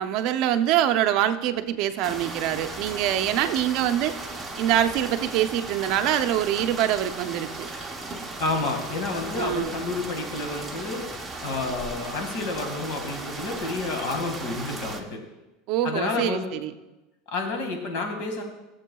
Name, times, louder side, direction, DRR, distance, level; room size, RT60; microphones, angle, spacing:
voice 1, 0.0-4.2 4.6-7.7 9.3-9.7 15.7-16.7, right 11 dB, 50° right, 9 dB, 0.6 m, -24 dB
Thunder rain getting heavier, 2.0-15.0, right 2 dB, 5° right, 0.9 m, -36 dB
voice 2, 8.4-11.1 11.4-15.2 15.8-16.4 17.3-18.4, left 3 dB, 60° left, 3 dB, 1.9 m, -29 dB
16.5 x 7.4 x 2.3 m, 1.0 s
supercardioid pair, 145°, 0 cm